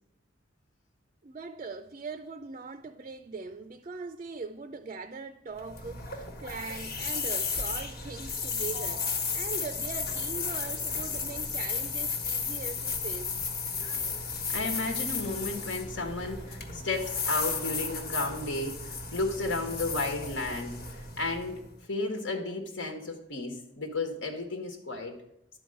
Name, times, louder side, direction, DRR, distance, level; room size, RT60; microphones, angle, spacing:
voice 1, 1.2-13.4, right 4 dB, 35° right, 0.4 m, -41 dB
sound 1, 5.5-21.7, left 5 dB, 50° left, 1.3 m, -34 dB
voice 2, 14.5-20.8 21.2-21.6 21.9-25.2, left 2 dB, 80° left, 1.6 m, -33 dB
11.0 x 4.7 x 7.8 m
head